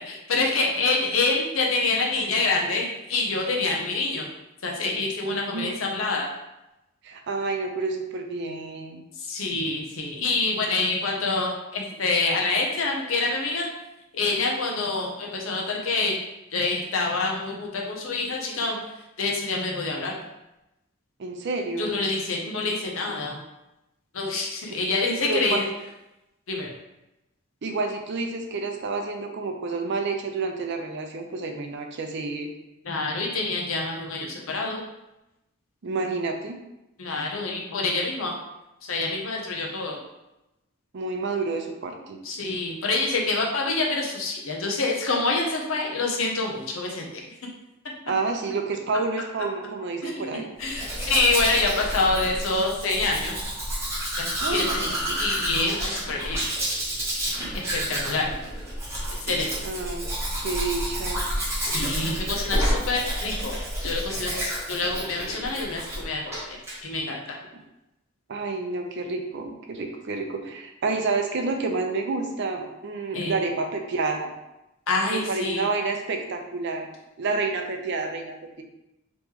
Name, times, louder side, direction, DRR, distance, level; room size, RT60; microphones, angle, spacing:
voice 1, 0.1-4.3 4.6-6.3 9.2-13.7 14.1-16.2 16.5-18.8 19.2-20.2 21.8-23.4 24.1-25.6 26.5-26.7 32.8-34.8 37.0-38.4 38.9-40.0 42.2-47.2 47.8-47.9 50.0-53.4 54.2-54.9 55.2-56.4 57.5-58.3 59.2-59.5 61.6-63.5 63.8-67.4 73.1-73.3 74.9-75.6, left 3 dB, 70° left, 0 dB, 0.7 m, -26 dB
voice 2, 5.2-5.8 7.0-9.0 21.2-22.0 25.2-25.6 27.6-32.5 35.8-36.6 40.9-42.2 48.1-50.5 54.4-55.2 59.6-60.1 60.4-61.2 68.3-74.3 75.1-76.9 77.2-78.6, right 3 dB, 55° right, 3 dB, 0.5 m, -29 dB
Domestic sounds home sounds, 50.6-66.0 66.3-66.8, equal, 15° right, 1.0 m, -30 dB
3.0 x 3.0 x 3.6 m, 0.93 s
head